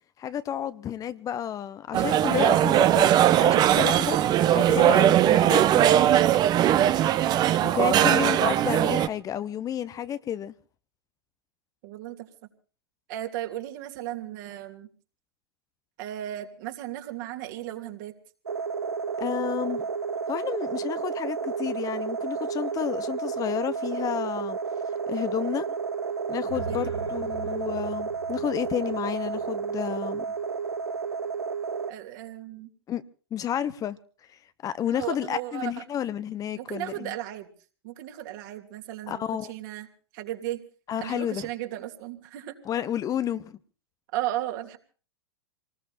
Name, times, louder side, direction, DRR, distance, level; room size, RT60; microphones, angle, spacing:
voice 1, 0.2-4.2 4.5-6.2 7.6-10.5 19.2-19.9 20.3-24.6 25.1-25.7 26.3-30.3 32.9-33.0 33.3-34.0 34.6-37.1 39.1-39.5 40.9-41.5 42.7-43.6, left 10 dB, 25° left, 0.9 m, -31 dB
sound 1, 1.9-9.1, right 12 dB, 30° right, 1.0 m, -20 dB
voice 2, 7.8-8.7 11.8-12.3 13.1-14.9 16.0-18.1 26.7-27.1 31.9-32.7 34.9-35.7 36.6-37.5 37.8-39.9 40.1-40.6 41.0-42.6 44.1-44.8, right 13 dB, 50° right, 2.8 m, -35 dB
sound 2, 18.5-31.9, right 5 dB, 80° right, 1.0 m, -31 dB
sound 3, 26.3-30.4, right 3 dB, 90° left, 3.5 m, -42 dB
27.5 x 19.5 x 2.7 m
figure-of-eight pair, 100°, 13 cm